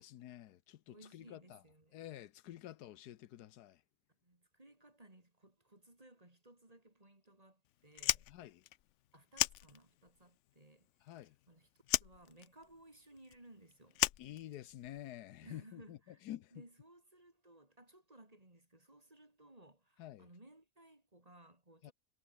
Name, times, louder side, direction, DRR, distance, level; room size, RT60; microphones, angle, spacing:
voice 1, 0.0-1.6 1.9-3.8 8.3-8.6 11.0-11.3 14.2-16.6 20.0-20.3 21.8-21.9, left 13 dB, 85° left, 1.3 m, -49 dB
voice 2, 0.9-2.1 4.2-8.3 9.1-11.7 12.0-14.0 15.4-16.2 16.5-21.9, right 1 dB, 25° right, 3.5 m, -61 dB
Fire, 7.9-10.2 10.5-11.5 11.8-15.0, left 14 dB, 70° left, 0.7 m, -36 dB
omnidirectional pair, 1.7 m